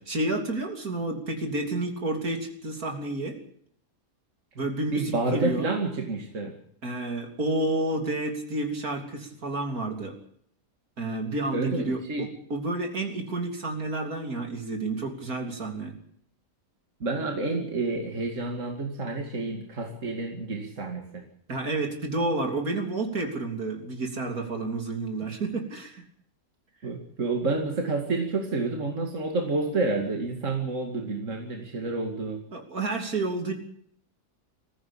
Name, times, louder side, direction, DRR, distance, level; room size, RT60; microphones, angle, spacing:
voice 1, 0.1-3.4 4.6-5.7 6.8-10.2 11.0-15.9 21.5-26.0 32.5-33.5, right 2 dB, 70° right, 3 dB, 3.8 m, -30 dB
voice 2, 4.9-6.5 11.5-12.3 17.0-21.2 26.8-32.4, right 3 dB, 55° right, 2 dB, 2.8 m, -29 dB
21.5 x 15.5 x 8.6 m, 0.65 s
omnidirectional pair, 1.6 m